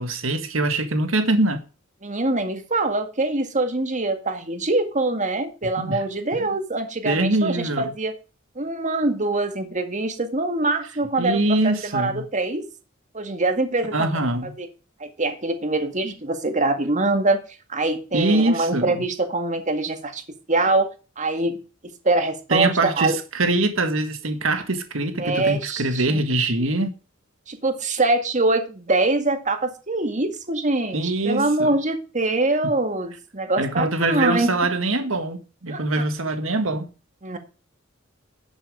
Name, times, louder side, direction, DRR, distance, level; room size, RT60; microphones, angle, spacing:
voice 1, 0.0-1.6 5.8-6.0 6.4-6.5 7.0-7.9 11.2-12.2 13.9-14.5 18.1-19.0 22.5-26.9 30.9-31.7 32.6-32.7 33.6-36.9, right 2 dB, 80° right, 1.8 m, -23 dB
voice 2, 2.0-8.1 8.6-12.7 13.1-14.1 14.4-14.7 15.0-17.4 17.7-20.2 20.5-20.9 21.2-21.6 22.0-23.2 25.2-26.2 27.5-31.0 31.3-34.5 35.7-35.8 37.2-37.4, right 2 dB, 40° right, 2.0 m, -24 dB
11.5 x 7.6 x 5.0 m
head